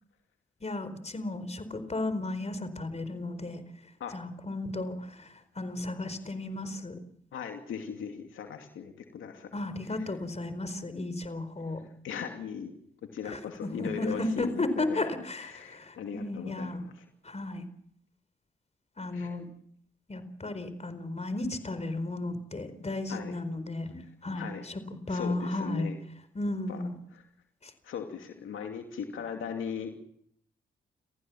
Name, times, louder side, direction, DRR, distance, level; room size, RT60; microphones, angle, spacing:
voice 1, 0.6-3.6 4.1-6.9 9.5-11.8 13.2-16.8 17.2-17.6 19.0-19.5 20.1-24.8 25.1-25.9 26.3-27.0 27.6-27.7, left 2 dB, 30° left, 11 dB, 4.5 m, -34 dB
voice 2, 7.3-9.5 9.9-10.0 11.8-12.7 13.1-15.0 15.5-16.9 19.1-19.3 23.1-23.3 24.4-24.6 25.1-26.0 26.7-26.8 27.1-27.2 27.8-30.0, left 7 dB, 80° left, 4 dB, 2.6 m, -38 dB
30.0 x 15.0 x 7.4 m, 0.71 s
supercardioid pair, 50°, 20 cm